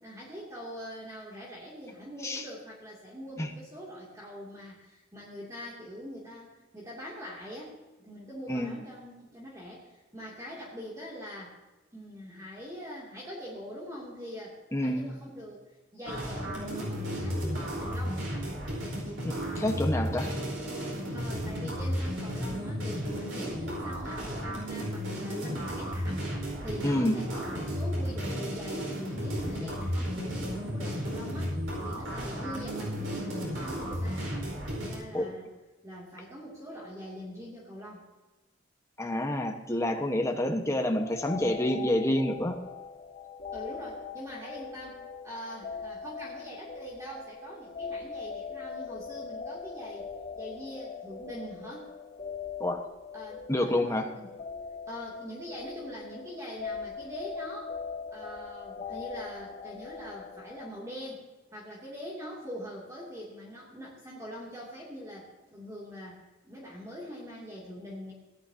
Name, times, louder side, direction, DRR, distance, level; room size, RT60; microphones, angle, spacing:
voice 1, 0.0-11.5 11.9-15.6 15.9-18.2 21.1-26.3 26.6-34.5 34.7-35.4 35.8-38.0 43.5-50.1 50.3-51.9 53.1-54.3 54.9-57.7 58.1-61.2 61.5-68.1, equal, 15° right, -5 dB, 2.8 m, -43 dB
voice 2, 14.7-15.1 19.2-20.3 26.8-27.2 35.1-35.3 39.0-42.5 52.6-52.8 53.5-54.0, left 1 dB, 15° left, 3 dB, 1.3 m, -28 dB
sound 1, 16.0-35.0, equal, 85° right, 4.8 m, -33 dB
sound 2, 40.9-60.7, left 6 dB, 35° left, 1.3 m, -41 dB
17.5 x 11.5 x 2.9 m, 1.2 s
head